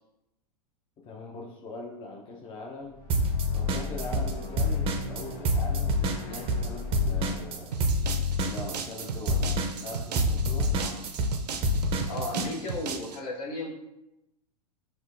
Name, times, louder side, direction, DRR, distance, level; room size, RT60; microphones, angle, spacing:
voice 1, 1.0-3.0 3.5-7.8 8.4-10.7, left 3 dB, 25° left, 0 dB, 0.5 m, -41 dB
sound 1, 2.8-9.2, left 2 dB, 45° left, 1.1 m, -39 dB
sound 2, 3.1-4.3 4.6-12.5, left 1 dB, 30° right, 0.4 m, -27 dB
sound 3, 7.7-13.2, right 6 dB, 85° right, 0.4 m, -36 dB
voice 2, 12.1-13.7, left 2 dB, 70° left, -1 dB, 0.9 m, -35 dB
4.2 x 2.2 x 2.5 m, 0.89 s
hypercardioid pair, 105°, 20 cm